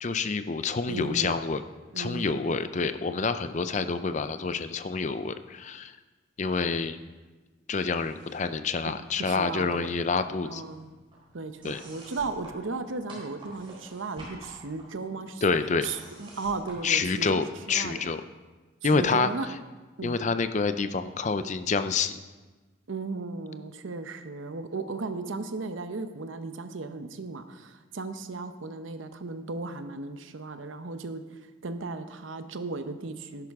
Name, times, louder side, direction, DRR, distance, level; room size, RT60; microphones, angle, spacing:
voice 1, 0.0-1.6 2.0-5.9 6.4-7.0 7.7-10.6 11.6-11.8 15.4-15.9 16.8-18.2 18.8-19.5 20.0-22.2, left 4 dB, 35° left, 11 dB, 0.5 m, -27 dB
voice 2, 0.9-1.4 1.9-2.5 9.2-9.9 10.4-10.9 11.3-15.4 15.8-18.0 18.9-19.5 20.0-20.2 22.9-31.2 31.6-33.5, right 3 dB, 85° right, 9 dB, 0.8 m, -35 dB
sound 1, 7.8-8.6 8.8-9.9 10.1-17.7, right 1 dB, 25° right, 3.7 m, -49 dB
12.5 x 10.5 x 3.6 m, 1.3 s
head